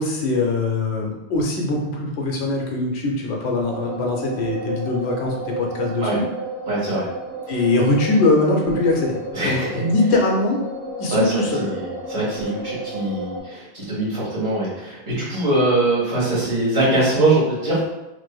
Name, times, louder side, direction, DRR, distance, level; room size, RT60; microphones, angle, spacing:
voice 1, 0.0-6.2 7.5-10.6 11.0-11.7, left 2 dB, 75° left, 0 dB, 0.9 m, -22 dB
sound 1, 3.6-13.4, right 2 dB, 50° right, 1.1 m, -32 dB
voice 2, 6.7-7.0 9.3-9.8 11.1-17.8, right 2 dB, 65° right, -7 dB, 1.4 m, -22 dB
2.6 x 2.5 x 2.3 m, 0.94 s
omnidirectional pair, 1.1 m